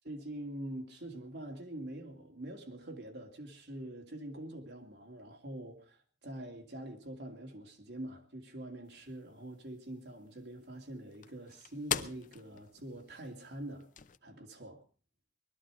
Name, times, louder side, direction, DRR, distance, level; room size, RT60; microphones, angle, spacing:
voice 1, 0.0-13.9 14.2-14.8, right 1 dB, 65° right, 2.7 m, -45 dB
sound 1, 8.8-14.2, left 8 dB, 45° left, 0.7 m, -44 dB
20.0 x 13.0 x 4.9 m
head